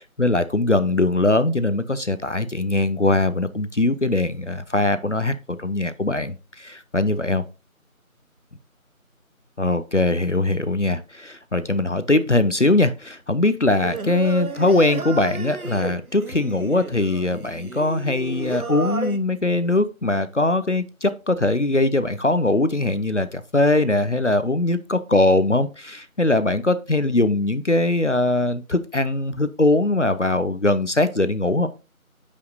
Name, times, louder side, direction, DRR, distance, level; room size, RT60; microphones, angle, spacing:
voice 1, 0.0-7.4 9.6-31.7, left 2 dB, 55° left, 0.5 m, -21 dB
Singing, 13.8-19.2, right 2 dB, 80° right, 1.0 m, -32 dB
8.3 x 5.1 x 2.5 m
figure-of-eight pair, 180°, 42 cm